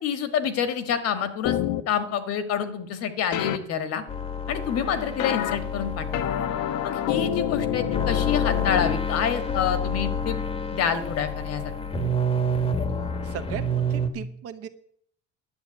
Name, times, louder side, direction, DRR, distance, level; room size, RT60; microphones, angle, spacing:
voice 1, 0.0-1.6 1.9-4.0 4.5-6.2 6.8-10.4 10.7-11.7, left 8 dB, 55° left, 10 dB, 1.5 m, -27 dB
sound 1, 1.4-1.8 3.3-3.6 5.2-5.6 6.1-8.9, left 11 dB, 85° left, 1.0 m, -27 dB
sound 2, 4.1-14.1, left 1 dB, 20° left, 1.1 m, -28 dB
voice 2, 13.2-14.7, right 9 dB, 55° right, 9 dB, 1.0 m, -37 dB
10.5 x 7.1 x 9.5 m, 0.67 s
cardioid pair, 160°, 29 cm